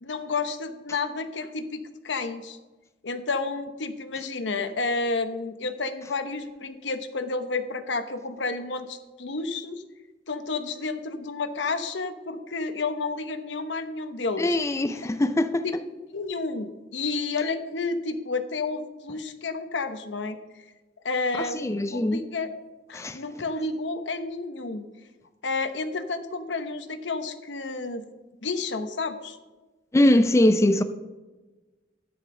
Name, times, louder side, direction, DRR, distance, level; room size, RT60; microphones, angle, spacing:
voice 1, 0.0-2.6 3.0-9.8 10.3-14.6 15.6-15.8 16.1-20.4 21.0-22.5 22.9-24.9 25.4-28.1 28.4-29.4, left 3 dB, 85° left, 0.9 m, -31 dB
voice 2, 14.4-15.7 21.4-22.2 22.9-23.2 29.9-30.8, left 1 dB, 15° left, 0.4 m, -22 dB
13.0 x 9.7 x 3.8 m
head